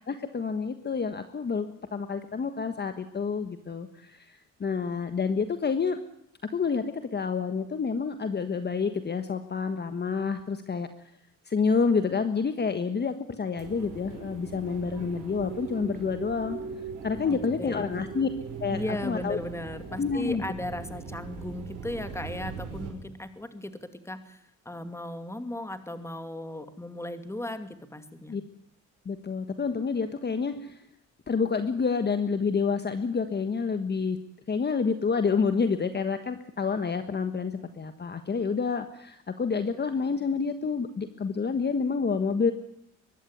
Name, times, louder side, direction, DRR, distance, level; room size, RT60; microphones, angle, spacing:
voice 1, 0.1-6.0 6.5-10.9 11.5-16.6 17.0-18.3 18.6-19.4 20.0-20.4 28.3-28.4 29.0-30.8 31.3-34.2 34.5-42.5, left 5 dB, 35° left, 9 dB, 1.4 m, -28 dB
sound 1, 13.6-22.9, right 5 dB, 85° right, 5.3 m, -40 dB
voice 2, 17.3-17.9 18.7-28.3, left 1 dB, 10° left, 9 dB, 2.4 m, -36 dB
23.0 x 12.0 x 9.6 m, 0.75 s
cardioid pair, 90°, 30 cm